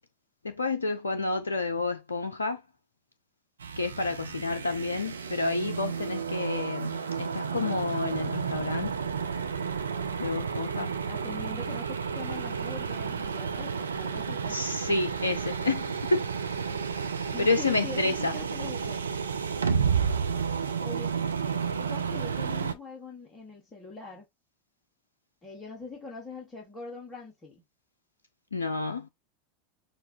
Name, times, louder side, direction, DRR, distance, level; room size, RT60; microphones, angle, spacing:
voice 1, 0.4-2.6 3.8-9.0 10.2-10.9 14.5-16.3 17.0-18.4 28.5-29.1, left 3 dB, 85° left, 0.4 m, -30 dB
sound 1, 3.6-22.7, right 6 dB, 80° right, 0.5 m, -31 dB
voice 2, 11.1-14.6 16.7-17.0 17.3-19.0 20.8-21.1 21.8-24.3 25.4-27.6, left 3 dB, 25° left, 1.6 m, -42 dB
6.4 x 2.3 x 2.6 m
figure-of-eight pair, 85°, 0 cm